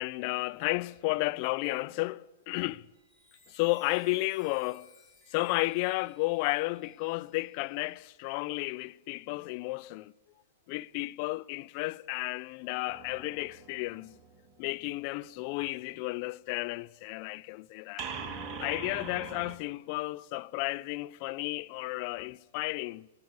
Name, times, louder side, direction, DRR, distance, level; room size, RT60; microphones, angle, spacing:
voice 1, 0.0-2.9 3.5-4.9 5.3-10.1 10.7-14.2 14.6-18.1 18.6-23.1, left 22 dB, 40° left, 0.7 m, -33 dB
Chime, 2.8-8.8 9.4-9.7, left 5 dB, 15° left, 7.6 m, -60 dB
sound 1, 12.9-14.9 18.0-19.6, right 5 dB, 25° right, 2.5 m, -42 dB
19.5 x 18.5 x 8.9 m
figure-of-eight pair, 110°, 0 cm